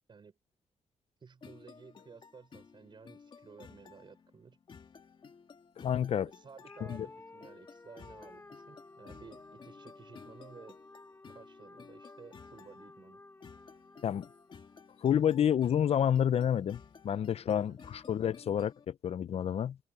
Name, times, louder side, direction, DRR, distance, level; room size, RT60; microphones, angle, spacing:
voice 1, 1.2-4.6 6.2-10.8 11.3-13.2 17.6-17.8, right 5 dB, 45° right, 5.3 m, -54 dB
sound 1, 1.4-18.9, left 5 dB, 45° left, 1.8 m, -55 dB
voice 2, 5.8-6.3 6.9-7.1 14.0-14.3 15.0-19.8, left 9 dB, 60° left, 0.6 m, -29 dB
sound 2, 6.6-15.2, left 2 dB, 20° left, 4.0 m, -55 dB
wide cardioid pair, 125°, 12 cm